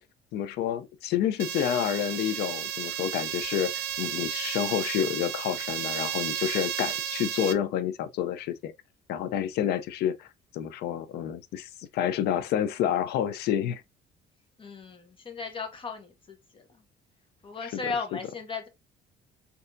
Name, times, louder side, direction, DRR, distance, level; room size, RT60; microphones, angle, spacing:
voice 1, 0.3-8.7 9.1-10.3 10.5-13.8 17.6-17.9, left 10 dB, 75° left, 0.5 m, -29 dB
sound 1, 1.4-7.5, right 11 dB, 75° right, 0.5 m, -33 dB
voice 2, 14.6-16.6 17.4-18.7, left 4 dB, 30° left, 1.1 m, -36 dB
4.3 x 2.7 x 2.5 m
cardioid pair, 110°, 17 cm